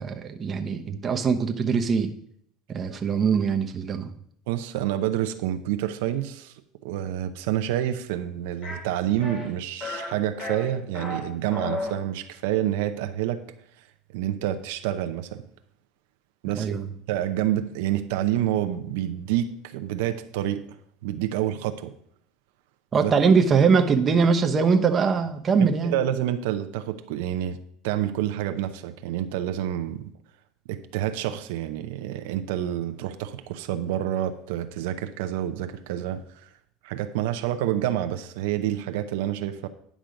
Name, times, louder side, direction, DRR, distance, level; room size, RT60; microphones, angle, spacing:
voice 1, 0.0-2.1 2.7-4.1 16.5-16.9 22.9-25.9, right 5 dB, 25° right, 5 dB, 0.9 m, -22 dB
voice 2, 4.5-13.4 13.8-13.9 14.1-15.4 16.4-16.7 17.1-20.8 21.0-21.9 23.0-23.1 25.8-30.0 30.7-36.5 36.8-39.7, right 12 dB, 85° right, 8 dB, 0.7 m, -28 dB
sound 1, 8.6-8.8 9.2-9.5 9.8-10.1 10.4-11.2 11.5-11.9, left 2 dB, 30° left, 3.5 m, -33 dB
10.0 x 6.2 x 5.2 m, 0.66 s
supercardioid pair, 140°, 0 cm